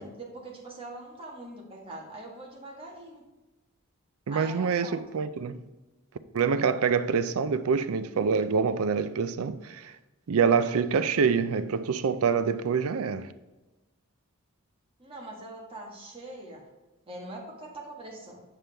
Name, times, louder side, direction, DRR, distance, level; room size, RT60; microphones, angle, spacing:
voice 1, 0.0-3.3 4.3-5.0 15.0-16.6 17.0-18.4, right 2 dB, 25° right, 1.5 m, -43 dB
voice 2, 4.3-5.6 6.3-9.9 10.3-13.3, right 6 dB, 70° right, 0.4 m, -26 dB
7.4 x 6.8 x 3.4 m
head